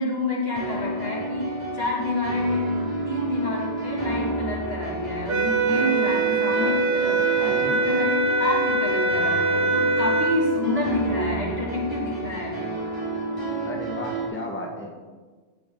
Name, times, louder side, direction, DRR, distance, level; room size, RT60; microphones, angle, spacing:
voice 1, 0.0-8.1 8.4-12.6, left 1 dB, 60° left, -4 dB, 3.1 m, -28 dB
sound 1, 0.5-14.3, right 2 dB, 20° right, 4.4 m, -31 dB
sound 2, 5.3-10.4, right 3 dB, 60° right, 1.4 m, -23 dB
voice 2, 7.3-7.8 13.6-14.9, left 1 dB, 10° left, 0 dB, 1.5 m, -34 dB
15.5 x 10.0 x 3.9 m, 1.4 s
omnidirectional pair, 1.2 m